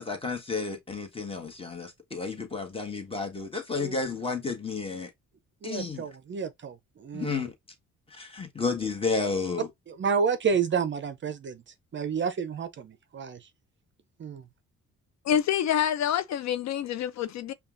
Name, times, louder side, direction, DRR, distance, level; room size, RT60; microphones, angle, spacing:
voice 1, 0.0-5.1 5.6-6.1 7.1-7.5 8.1-9.7, left 4 dB, 20° left, 1.3 m, -31 dB
voice 2, 5.6-7.4 9.9-11.6 11.9-13.5 14.2-14.4, right 6 dB, 40° right, 0.5 m, -30 dB
voice 3, 15.3-17.5, left 10 dB, 65° left, 0.5 m, -27 dB
5.4 x 2.3 x 2.5 m
cardioid pair, 90°, 30 cm